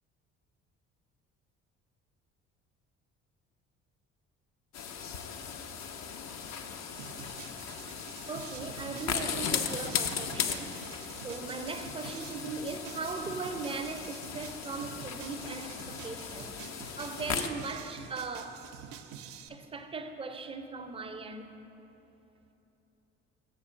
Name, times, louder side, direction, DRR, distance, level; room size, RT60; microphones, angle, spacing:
sound 1, 4.7-17.5, left 7 dB, 50° left, 0.6 m, -37 dB
sound 2, 7.0-19.5, right 8 dB, 70° right, 0.5 m, -48 dB
voice 1, 8.3-18.7 19.5-21.6, right 4 dB, 15° right, 0.5 m, -39 dB
6.7 x 4.5 x 6.1 m
hypercardioid pair, 55°, 34 cm